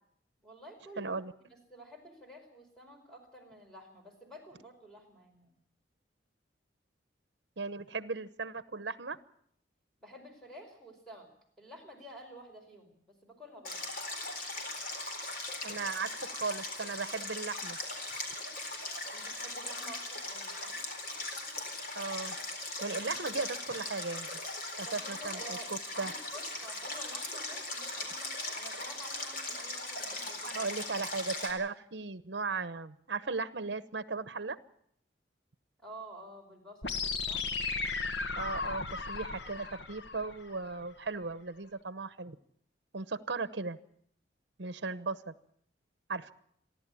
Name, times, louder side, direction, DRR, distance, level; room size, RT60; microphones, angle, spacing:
voice 1, 0.4-1.1 1.5-5.6 10.0-11.3 11.6-13.8 19.1-20.8 24.8-30.7 35.8-37.4, right 1 dB, 5° left, 2 dB, 5.0 m, -51 dB
voice 2, 1.0-1.3 7.6-9.2 15.6-17.8 22.0-22.3 22.8-24.3 24.8-26.1 30.4-34.6 38.4-42.4 42.9-43.8 44.6-45.3 46.1-46.3, right 4 dB, 65° right, 14 dB, 0.9 m, -37 dB
Stream, 13.6-31.5, left 2 dB, 50° left, 4.0 m, -39 dB
sound 1, 36.8-40.8, left 4 dB, 65° left, 1.4 m, -36 dB
28.0 x 11.5 x 8.5 m, 0.71 s
head